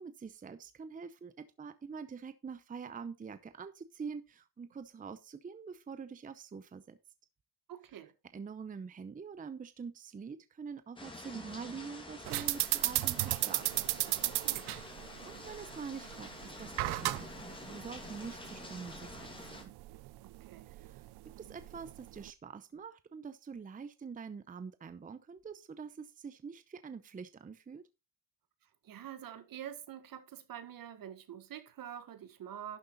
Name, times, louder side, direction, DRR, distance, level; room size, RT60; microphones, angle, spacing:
voice 1, 0.0-7.0 8.3-13.8 14.6-16.3 16.6-19.7 20.7-21.1 21.4-27.8, right 6 dB, 20° right, 0.7 m, -45 dB
voice 2, 7.7-8.1 14.4-14.8 20.2-20.7 28.8-32.8, right 10 dB, 60° right, 1.6 m, -46 dB
sound 1, 11.0-19.6, left 2 dB, 15° left, 2.4 m, -48 dB
sound 2, 12.3-22.3, right 19 dB, 80° right, 0.6 m, -36 dB
11.5 x 6.5 x 4.0 m
cardioid pair, 105°, 38 cm